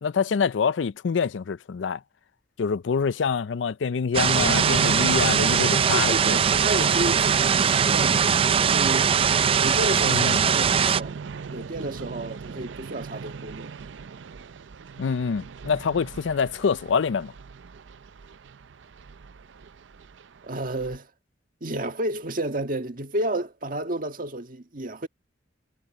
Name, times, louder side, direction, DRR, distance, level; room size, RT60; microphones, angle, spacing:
voice 1, 0.0-2.0 2.6-6.6 10.1-10.5 15.0-17.3, left 6 dB, 85° left, 0.4 m, -26 dB
sound 1, 4.1-11.0, right 7 dB, 30° right, 0.4 m, -21 dB
sound 2, 4.4-21.0, right 5 dB, 90° right, 0.5 m, -35 dB
voice 2, 5.9-8.2 8.7-9.1 9.6-11.1 11.5-13.7 20.4-21.1 21.6-25.1, right 1 dB, 50° right, 1.6 m, -31 dB
head